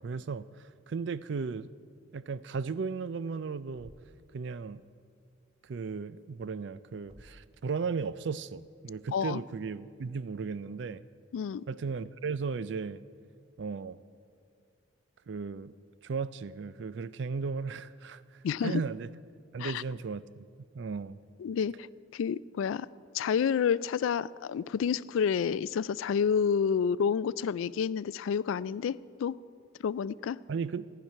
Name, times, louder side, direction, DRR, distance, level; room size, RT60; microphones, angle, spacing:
voice 1, 0.0-1.7 2.1-3.9 4.3-4.8 5.6-11.0 11.7-13.0 13.6-14.0 15.3-15.7 16.0-19.1 19.5-20.4 20.7-21.2 30.5-30.9, right 5 dB, 60° right, 16 dB, 0.4 m, -35 dB
Thump thud, 3.7-4.3 7.0-7.6, right 1 dB, 30° right, 0.7 m, -55 dB
voice 2, 11.3-11.6 18.4-18.8 19.6-19.8 21.4-21.9 22.1-22.9 23.1-29.4 29.8-30.4, left 7 dB, 80° left, 19 dB, 0.3 m, -29 dB
15.0 x 5.9 x 9.8 m, 2.3 s
head